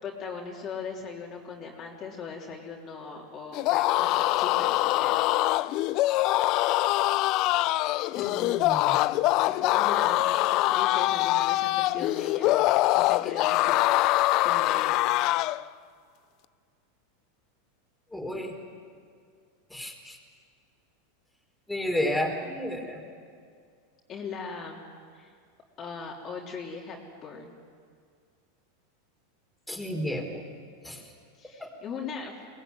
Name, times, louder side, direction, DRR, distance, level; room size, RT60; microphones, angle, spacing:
voice 1, 0.0-5.3 9.4-12.6 12.9-15.0 24.1-24.8 25.1-25.3 25.8-27.5 31.4-32.3, left 5 dB, 35° left, -1 dB, 3.3 m, -39 dB
sound 1, 3.5-15.6, left 17 dB, 50° left, 0.5 m, -24 dB
voice 2, 8.1-9.0 18.1-18.6 19.7-20.2 21.7-23.0 29.7-30.4 30.8-31.0 31.6-31.7, left 1 dB, ahead, 0 dB, 4.4 m, -32 dB
23.0 x 19.0 x 9.6 m, 2.2 s
supercardioid pair, 120°, 0 cm